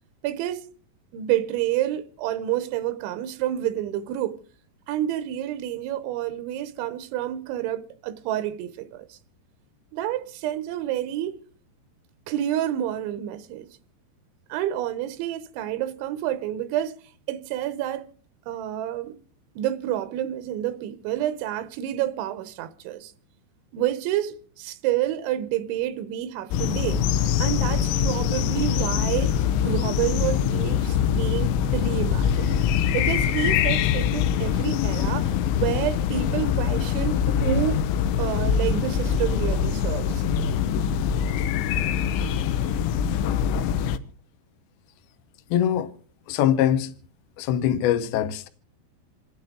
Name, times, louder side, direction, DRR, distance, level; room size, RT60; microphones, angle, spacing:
voice 1, 0.2-0.7 1.1-4.4 4.9-9.2 9.9-11.4 12.3-13.7 14.5-17.0 17.3-18.1 18.5-19.2 19.6-23.1 23.7-27.0 27.4-32.6 32.9-37.8 38.2-40.2, right 12 dB, 90° right, 3.4 m, -29 dB
sound 1, 26.5-44.0, left 8 dB, 85° left, 3.2 m, -23 dB
voice 2, 45.5-45.9 46.3-46.9 47.4-48.5, left 10 dB, 70° left, 2.6 m, -22 dB
28.0 x 10.5 x 3.7 m
omnidirectional pair, 5.2 m